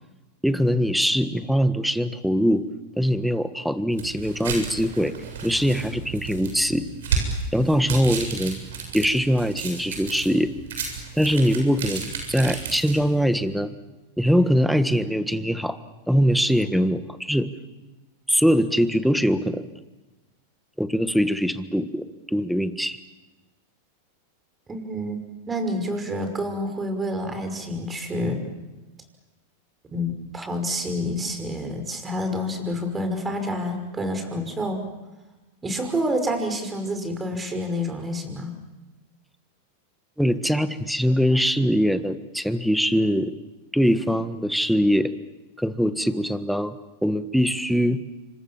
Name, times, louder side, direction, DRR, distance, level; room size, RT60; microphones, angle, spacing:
voice 1, 0.4-2.6 3.0-5.1 5.4-6.9 7.5-8.6 8.9-10.5 11.2-13.7 14.2-15.8 16.1-17.5 18.3-19.7 20.8-23.0 40.2-43.3 43.7-45.1 45.6-46.7 47.0-48.0, equal, ahead, 11 dB, 1.5 m, -22 dB
sound 1, 3.9-13.2, right 5 dB, 80° right, 7.9 m, -32 dB
voice 2, 24.7-25.2 25.5-28.4 29.9-34.8 35.6-38.5, equal, 15° right, 6 dB, 5.7 m, -28 dB
28.0 x 25.5 x 7.4 m, 1.1 s
hypercardioid pair, 120°, 0 cm